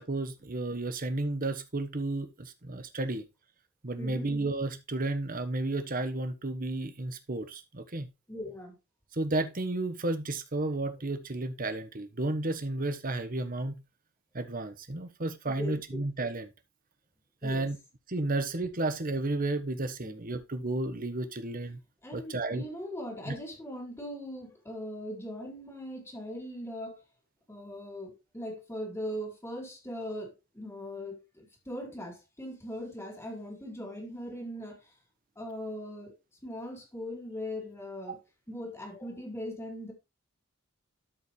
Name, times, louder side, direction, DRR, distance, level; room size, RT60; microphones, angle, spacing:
voice 1, 0.0-3.2 3.8-8.1 9.1-13.8 14.3-16.5 17.4-17.8 18.1-21.8 22.1-22.6 23.2-23.3 38.1-38.2, right 2 dB, 40° right, 1.1 m, -32 dB
voice 2, 4.0-4.3 8.3-8.7 15.5-16.0 17.4-17.7 20.0-20.2 22.0-27.0 27.5-34.8 35.4-36.1 36.4-38.2 38.5-39.9, equal, 10° left, 2.5 m, -40 dB
12.5 x 5.2 x 3.1 m
head